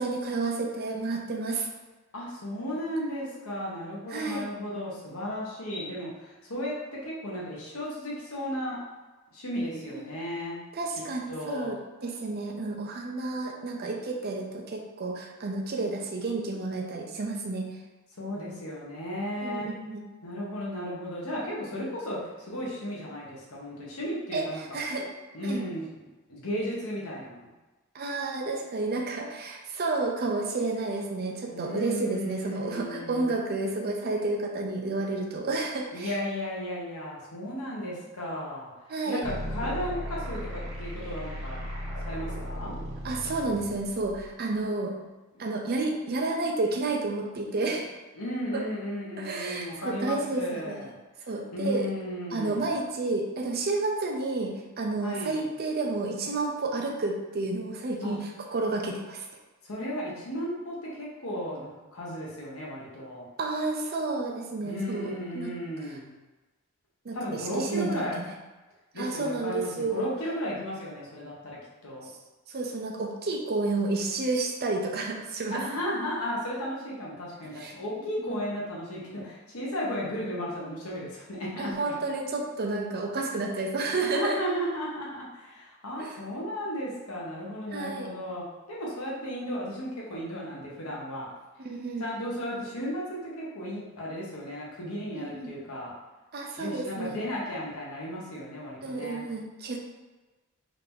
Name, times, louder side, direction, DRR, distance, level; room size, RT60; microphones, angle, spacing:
voice 1, 0.0-1.7 4.1-4.5 9.6-10.0 10.7-17.7 19.4-20.0 24.3-24.5 24.7-25.1 25.4-25.6 27.9-36.1 38.9-39.2 43.0-44.9 45.4-47.9 48.5-48.6 49.2-50.9 51.3-51.9 52.3-59.2 63.4-65.5 67.0-68.3 68.9-70.1 72.5-75.6 77.6-77.8 78.2-78.4 81.6-84.4 86.0-86.2 87.7-88.1 91.6-92.1 95.1-95.5 96.3-97.2 98.8-99.8, right 3 dB, 45° right, 1 dB, 0.6 m, -31 dB
voice 2, 2.1-8.8 9.3-10.6 11.3-11.7 18.2-19.8 20.2-24.6 25.3-26.0 26.3-27.5 31.5-33.3 35.9-38.7 39.1-41.6 42.0-42.7 48.1-50.9 51.5-52.7 55.0-55.5 58.0-58.2 59.6-63.3 64.6-66.1 67.1-68.2 68.9-72.1 75.5-81.7 84.0-91.3 92.0-95.9 96.6-99.3, equal, 80° left, -5 dB, 1.2 m, -34 dB
sound 1, 39.2-44.3, equal, 85° right, 1.4 m, -36 dB
3.8 x 2.9 x 3.7 m, 1.2 s
head